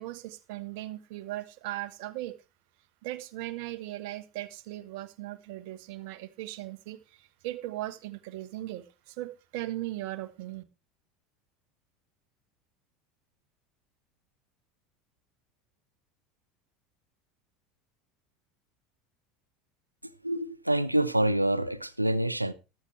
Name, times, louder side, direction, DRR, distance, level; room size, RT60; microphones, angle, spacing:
voice 1, 0.0-2.3 3.0-10.6, right 16 dB, 55° right, 1.2 m, -38 dB
voice 2, 20.2-22.5, right 1 dB, 90° right, 0.7 m, -26 dB
14.0 x 12.0 x 3.2 m
figure-of-eight pair, 75°, 0 cm